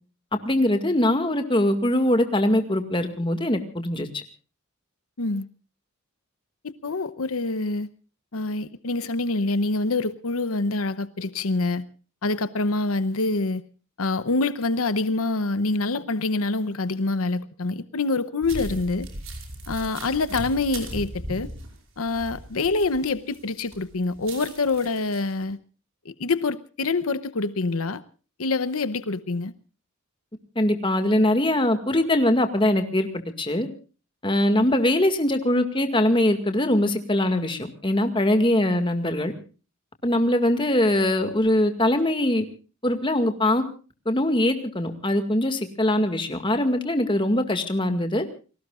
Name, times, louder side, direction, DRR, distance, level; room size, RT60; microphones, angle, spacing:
voice 1, 0.4-4.2 30.6-33.1 33.4-33.7 34.2-39.3 40.0-42.5 42.8-43.6 44.1-48.3, left 1 dB, 25° left, 7 dB, 2.0 m, -22 dB
voice 2, 5.2-5.5 6.6-7.9 8.3-11.9 12.2-13.6 14.0-19.1 19.7-21.5 22.0-25.6 26.0-28.0 28.4-29.5, left 3 dB, 85° left, 14 dB, 0.9 m, -26 dB
sound 1, 18.4-23.4 23.7-25.3, right 1 dB, 65° right, 5.4 m, -38 dB
29.5 x 19.5 x 2.5 m, 0.36 s
head